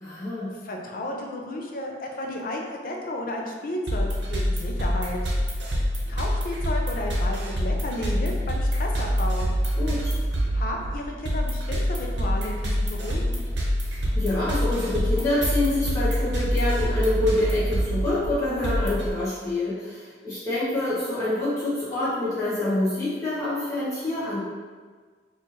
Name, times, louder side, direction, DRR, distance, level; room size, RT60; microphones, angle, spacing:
voice 1, 0.0-0.6 9.8-10.1 13.8-24.4, left 2 dB, 20° left, -11 dB, 0.8 m, -26 dB
voice 2, 0.6-5.2 6.1-9.5 10.5-13.4, left 1 dB, 50° left, 1 dB, 0.5 m, -33 dB
sound 1, 3.9-19.1, equal, 75° right, 0.8 m, -26 dB
4.4 x 2.4 x 2.8 m, 1.5 s
head